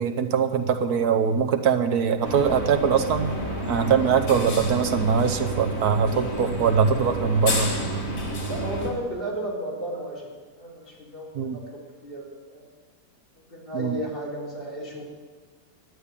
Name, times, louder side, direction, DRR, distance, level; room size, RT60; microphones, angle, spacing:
voice 1, 0.0-3.3 3.7-7.7 11.3-11.6 13.7-14.0, right 6 dB, 80° right, 7 dB, 1.4 m, -22 dB
sound 1, 2.2-8.9, right 1 dB, 60° left, 2.5 m, -30 dB
voice 2, 8.5-10.3 10.6-12.6 13.5-15.0, right 1 dB, 35° left, -4 dB, 3.8 m, -34 dB
11.5 x 10.5 x 8.5 m, 1.4 s
omnidirectional pair, 1.6 m